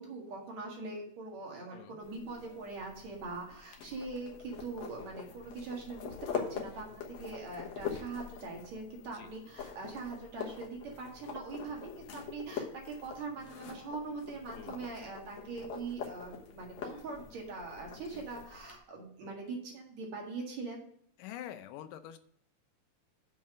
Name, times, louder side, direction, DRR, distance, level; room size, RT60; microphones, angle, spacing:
voice 1, 0.0-20.9, right 3 dB, 60° right, 0 dB, 3.0 m, -42 dB
voice 2, 1.7-2.0 9.1-9.3 14.5-14.9 18.1-18.2 21.2-22.2, left 11 dB, 85° left, 10 dB, 2.3 m, -46 dB
sound 1, 2.0-18.8, left 6 dB, 65° left, 2.2 m, -44 dB
7.3 x 5.6 x 7.5 m, 0.69 s
omnidirectional pair, 3.7 m